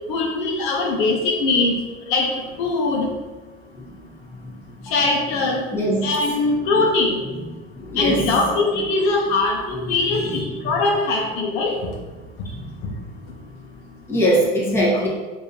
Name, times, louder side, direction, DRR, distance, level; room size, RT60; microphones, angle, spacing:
voice 1, 0.1-1.7 2.1-2.3 2.6-3.1 4.9-5.6 6.0-7.2 8.0-10.2 10.6-11.8, left 3 dB, 65° left, 0 dB, 0.7 m, -21 dB
voice 2, 3.8-4.1 4.4-4.5 5.7-6.1 7.7-8.3 9.8-10.5 12.4-12.8 14.1-15.1, equal, 15° left, -5 dB, 1.1 m, -22 dB
4.8 x 2.7 x 2.7 m, 1.3 s
supercardioid pair, 125°, 19 cm